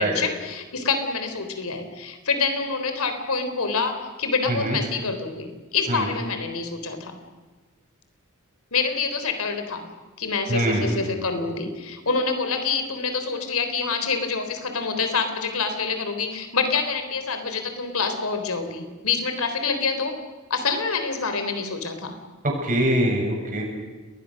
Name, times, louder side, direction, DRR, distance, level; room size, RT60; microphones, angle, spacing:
voice 1, 0.0-7.2 8.7-9.9 10.2-20.1 20.5-22.1, left 4 dB, 75° left, 7 dB, 3.7 m, -26 dB
voice 2, 10.5-11.0 22.4-23.6, right 1 dB, 40° right, 0 dB, 7.4 m, -23 dB
29.5 x 21.0 x 6.5 m, 1.3 s
head